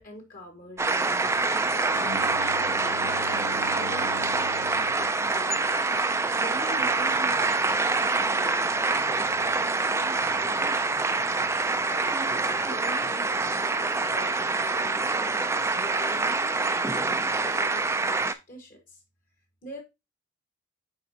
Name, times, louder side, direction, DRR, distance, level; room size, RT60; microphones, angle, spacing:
voice 1, 0.0-2.3 3.0-5.7 6.4-11.0 11.9-19.0 19.6-19.8, equal, 40° left, 1.4 m, -44 dB
sound 1, 0.8-18.3, right 3 dB, 15° right, 0.4 m, -26 dB
Bowed string instrument, 1.9-6.1, right 1 dB, 75° left, 1.3 m, -40 dB
9.5 x 3.7 x 2.8 m
head